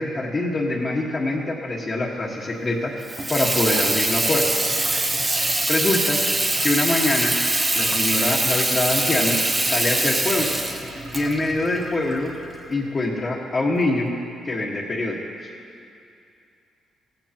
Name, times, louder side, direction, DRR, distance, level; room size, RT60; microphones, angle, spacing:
voice 1, 0.0-2.9 3.3-4.5 5.7-6.2 6.6-7.3 7.7-9.4 9.7-10.5 11.1-12.3 12.7-14.1 14.4-15.5, left 2 dB, 35° left, -6 dB, 1.7 m, -24 dB
Water tap faucet / Sink (filling or washing), 3.0-12.6, right 2 dB, 25° right, 1.1 m, -23 dB
16.5 x 15.5 x 3.0 m, 2.5 s
cardioid pair, 90°, 0 cm